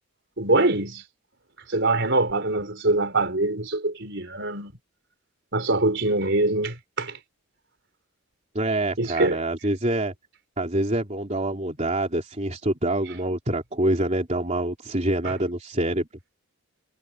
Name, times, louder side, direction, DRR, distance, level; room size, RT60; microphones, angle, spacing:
voice 1, 0.4-1.0 1.7-4.7 5.5-7.2 9.0-9.4 15.2-15.3, right 2 dB, 55° right, 4.9 m, -24 dB
voice 2, 8.6-10.1 10.6-16.1, right 1 dB, 30° right, 3.6 m, -26 dB
head